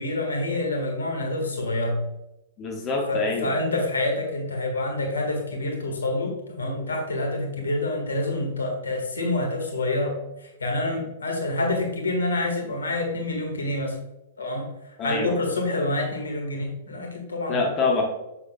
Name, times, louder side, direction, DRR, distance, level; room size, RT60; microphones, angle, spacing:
voice 1, 0.0-2.0 3.1-14.0 14.4-14.7 15.0-17.7, left 2 dB, 75° left, 2 dB, 1.6 m, -27 dB
voice 2, 2.6-3.5 15.0-15.4 17.5-18.0, left 3 dB, 30° left, 1 dB, 1.2 m, -25 dB
7.3 x 6.7 x 2.2 m, 0.92 s
figure-of-eight pair, 105°, 0 cm